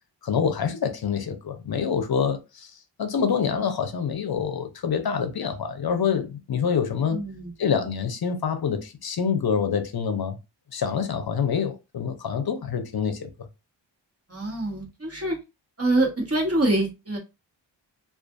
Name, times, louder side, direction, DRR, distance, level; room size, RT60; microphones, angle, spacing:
voice 1, 0.2-2.7 3.0-7.2 7.6-10.4 10.7-13.3, left 7 dB, 55° left, 0.6 m, -26 dB
voice 2, 7.1-7.5 14.3-15.4 15.8-17.2, right 2 dB, 30° right, 1.3 m, -25 dB
2.4 x 2.4 x 2.4 m
wide cardioid pair, 65°, 46 cm